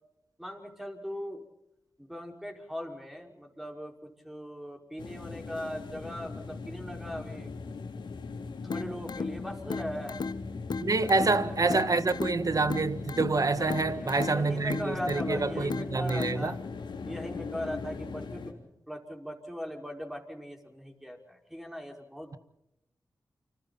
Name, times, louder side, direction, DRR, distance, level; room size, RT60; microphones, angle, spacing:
voice 1, 0.4-1.4 2.0-7.5 8.5-10.2 11.0-11.9 13.6-16.6 17.1-22.4, equal, 5° right, 5.5 m, -40 dB
sound 1, 5.0-18.5, left 4 dB, 85° left, 3.4 m, -40 dB
sound 2, 8.7-16.7, left 4 dB, 65° left, 1.1 m, -37 dB
voice 2, 10.8-16.5, right 3 dB, 50° right, 1.7 m, -27 dB
29.5 x 26.0 x 4.3 m
cardioid pair, 55°, 8 cm